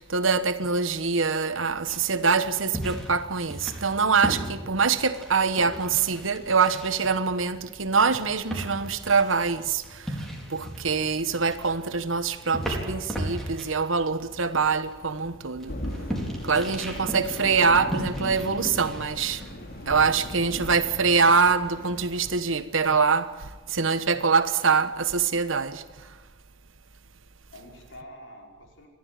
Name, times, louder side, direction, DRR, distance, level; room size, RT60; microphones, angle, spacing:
voice 1, 0.0-9.8 10.5-15.7 16.4-19.4 19.9-23.3 23.7-25.8, right 5 dB, 75° right, 1.3 m, -24 dB
sound 1, 1.9-19.5, equal, ahead, 4.5 m, -37 dB
sound 2, 15.7-22.2, left 1 dB, 50° left, 2.8 m, -38 dB
voice 2, 16.9-17.2 19.9-20.6 27.5-28.9, left 1 dB, 70° left, 5.3 m, -46 dB
29.5 x 12.5 x 9.1 m
head